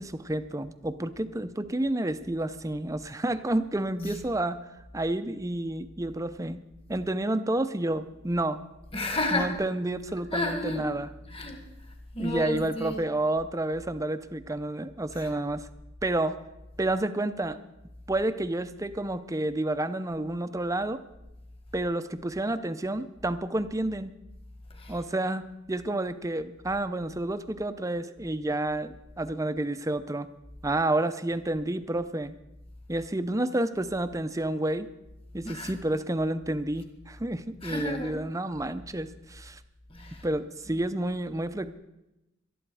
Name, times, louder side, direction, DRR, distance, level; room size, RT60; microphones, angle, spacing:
voice 1, 0.0-4.6 4.9-6.6 6.9-8.6 9.3-11.1 12.2-15.7 16.0-16.4 16.8-17.6 18.1-21.0 21.7-24.1 24.9-30.3 30.6-32.4 32.9-34.9 35.3-39.6 40.2-41.7, right 1 dB, 15° right, 0.6 m, -30 dB
voice 2, 8.9-9.5 10.3-10.9 11.3-11.6 12.1-13.0 15.2-15.3 24.8-25.0 35.4-35.7 37.6-38.2 39.9-40.3, left 1 dB, 30° left, 1.9 m, -31 dB
19.0 x 12.5 x 4.8 m
head